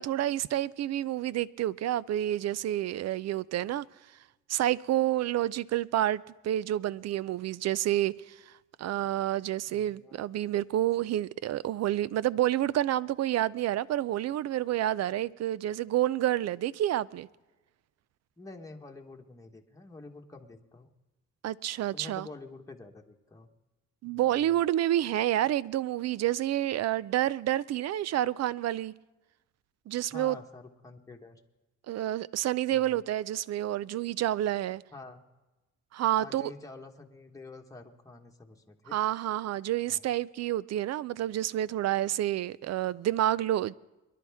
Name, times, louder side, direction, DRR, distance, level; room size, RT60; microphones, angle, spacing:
voice 1, 0.0-3.8 4.5-8.4 8.8-17.3 21.4-22.3 24.0-28.9 29.9-30.4 31.9-34.8 35.9-36.5 38.9-43.7, right 13 dB, 60° right, 0.5 m, -29 dB
voice 2, 9.7-10.2 18.4-20.9 21.9-23.5 24.0-24.3 30.1-31.4 32.7-33.0 34.9-35.2 36.2-39.0 39.9-40.0, left 3 dB, 10° left, 1.3 m, -48 dB
23.5 x 11.0 x 3.5 m
cardioid pair, 90°, 30 cm